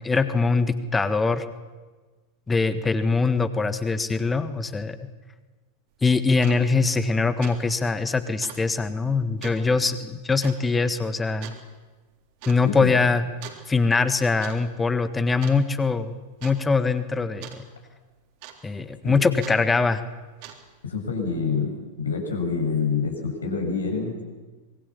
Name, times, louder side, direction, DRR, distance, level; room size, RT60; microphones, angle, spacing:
voice 1, 0.0-1.4 2.5-5.1 6.0-11.5 12.5-13.2 13.7-17.6 18.6-20.0, left 4 dB, 10° left, 12 dB, 1.6 m, -23 dB
sound 1, 5.9-6.0 6.3-6.6 7.0-7.1 7.4-7.6 7.9-8.0 8.4-8.6 9.4-9.6 10.4-10.6 11.4-11.6 12.4-12.6 13.4-13.7 14.2-14.6 14.8-15.1 15.4-15.9 16.4-16.6 17.4-17.6 18.4-18.8 19.4-19.6 20.2-20.8, right 11 dB, 45° right, 3.6 m, -41 dB
voice 2, 20.8-24.2, left 5 dB, 75° left, 2 dB, 6.4 m, -27 dB
25.0 x 22.5 x 7.3 m, 1.3 s
figure-of-eight pair, 90°, 0 cm